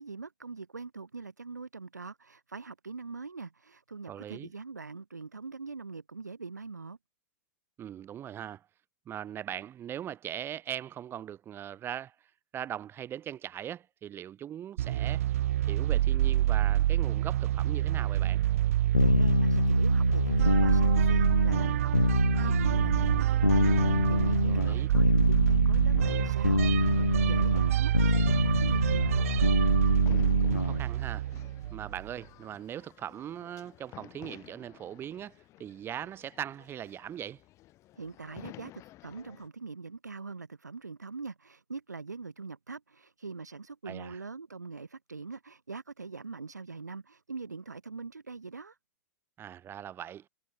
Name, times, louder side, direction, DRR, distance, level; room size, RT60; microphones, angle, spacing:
voice 1, 0.0-7.0 19.0-29.2 38.0-48.8, right 4 dB, 80° right, 1.7 m, -43 dB
voice 2, 4.1-4.5 7.8-8.7 9.1-12.1 12.5-15.2 15.6-18.4 24.5-24.9 30.1-31.3 31.7-37.4 43.8-44.2 49.4-50.2, right 10 dB, 25° right, 3.1 m, -40 dB
sound 1, 14.8-32.1, right 13 dB, 55° right, 0.7 m, -27 dB
sound 2, 18.9-30.8, left 3 dB, 85° left, 0.7 m, -26 dB
sound 3, 27.0-39.5, left 16 dB, 35° left, 2.9 m, -53 dB
figure-of-eight pair, 95°, 9 cm